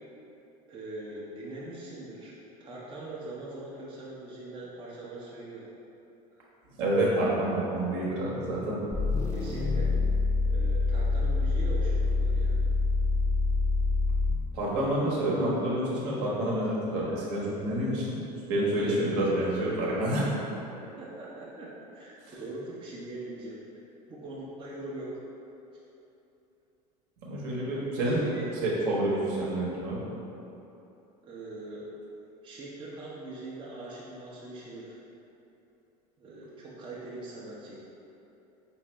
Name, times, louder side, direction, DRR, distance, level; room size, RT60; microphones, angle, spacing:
voice 1, 0.7-2.3 2.6-5.7 9.3-9.9 10.5-12.6 18.8-19.5 20.8-23.6 24.1-25.1 25.7-25.8 28.0-28.5 31.2-31.9 32.4-35.0 36.2-37.8, right 2 dB, 25° right, -7 dB, 0.7 m, -42 dB
voice 2, 6.8-8.8 14.5-18.2 18.5-20.3 27.2-28.2 28.6-30.1, right 1 dB, 55° right, -5 dB, 1.1 m, -28 dB
sound 1, 8.9-14.5, left 3 dB, 15° left, 0.6 m, -26 dB
5.0 x 2.6 x 3.2 m, 2.9 s
figure-of-eight pair, 70°, 21 cm